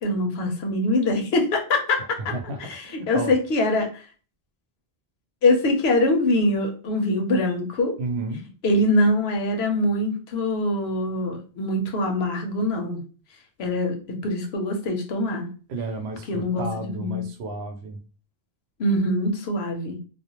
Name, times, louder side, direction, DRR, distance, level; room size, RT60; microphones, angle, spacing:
voice 1, 0.0-2.3 2.6-4.1 5.4-7.9 8.6-13.0 13.6-15.5 16.3-17.2 18.8-20.0, left 1 dB, 80° left, 3 dB, 0.9 m, -23 dB
voice 2, 2.0-3.4 8.0-8.4 15.7-18.0, right 3 dB, 85° right, 6 dB, 0.8 m, -32 dB
2.4 x 2.1 x 2.8 m, 0.37 s
omnidirectional pair, 1.1 m